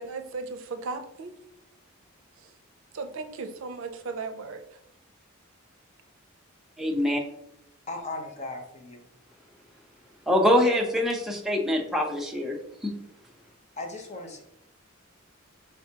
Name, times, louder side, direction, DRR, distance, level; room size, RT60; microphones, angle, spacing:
voice 1, 0.0-1.3 2.4-2.5 2.9-4.6, right 4 dB, 70° right, 7 dB, 0.5 m, -36 dB
voice 2, 6.8-7.2 10.3-12.6 12.8-13.0, left 1 dB, ahead, 0 dB, 0.6 m, -24 dB
voice 3, 7.9-9.1 13.8-14.4, left 2 dB, 35° left, 2 dB, 0.8 m, -37 dB
4.7 x 3.4 x 2.8 m, 0.76 s
head